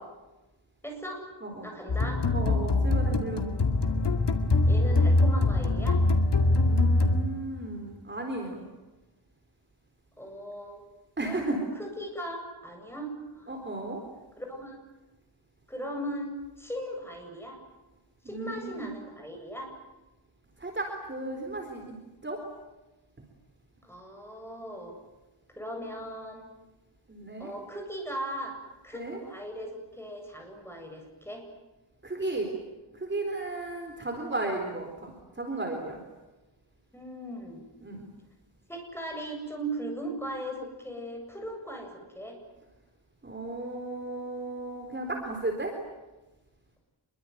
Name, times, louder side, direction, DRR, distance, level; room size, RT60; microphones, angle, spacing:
voice 1, 0.8-1.2 1.6-2.2 4.7-6.0 10.2-10.8 11.2-13.5 14.4-14.8 15.7-17.6 18.3-19.7 23.8-24.9 25.6-26.5 27.4-28.6 28.8-29.7 30.0-31.4 36.9-37.6 38.7-42.4, right 1 dB, 5° left, 2 dB, 7.8 m, -38 dB
sound 1, 1.9-7.6, left 2 dB, 60° left, 2.3 m, -23 dB
voice 2, 2.3-3.5 6.7-8.6 11.2-11.6 13.5-14.0 18.3-18.9 20.6-22.0 22.2-22.4 27.1-27.5 28.9-29.2 32.0-32.5 33.0-36.0 37.8-38.0 43.2-45.7, right 2 dB, 25° right, 2 dB, 4.1 m, -34 dB
26.0 x 23.5 x 9.4 m, 1.1 s
wide cardioid pair, 160°, 47 cm